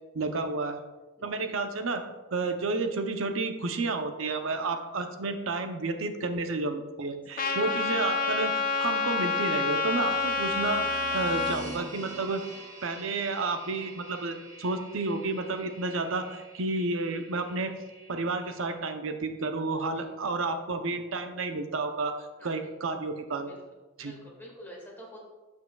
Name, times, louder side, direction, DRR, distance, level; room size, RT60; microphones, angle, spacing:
voice 1, 0.1-0.8 1.2-2.0 2.3-12.4 12.8-17.7 18.1-22.1 22.4-23.5 24.0-24.1, right 3 dB, 85° right, 7 dB, 0.7 m, -31 dB
voice 2, 1.2-1.5 4.4-4.8 7.4-7.6 20.0-20.1 22.4-22.6 23.4-23.6 24.0-25.2, equal, 10° left, -3 dB, 1.9 m, -48 dB
Trumpet, 7.4-11.6, left 3 dB, 45° left, 0.6 m, -28 dB
sound 1, 9.9-18.7, right 1 dB, 40° right, 1.2 m, -46 dB
12.0 x 5.5 x 2.3 m, 1.2 s
head